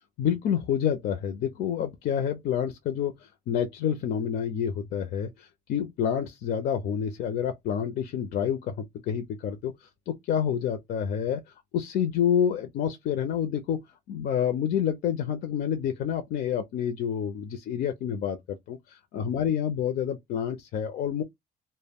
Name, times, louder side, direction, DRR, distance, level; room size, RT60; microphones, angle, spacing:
voice 1, 0.2-13.8 14.1-21.2, left 8 dB, 65° left, 0.5 m, -28 dB
2.1 x 2.1 x 3.4 m
cardioid pair, 110°, 17 cm